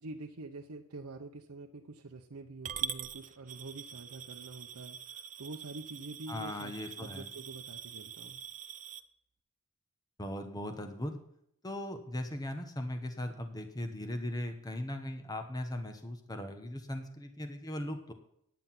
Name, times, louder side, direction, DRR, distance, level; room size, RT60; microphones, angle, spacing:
voice 1, 0.0-6.7 7.0-8.4, right 3 dB, 80° right, 3 dB, 0.8 m, -46 dB
Coin (dropping) / Glass, 2.6-9.0, right 8 dB, 35° right, 0.6 m, -43 dB
voice 2, 6.3-7.3 10.2-11.2 11.6-18.1, left 1 dB, 15° left, 6 dB, 1.1 m, -38 dB
9.5 x 9.4 x 5.8 m, 0.73 s
head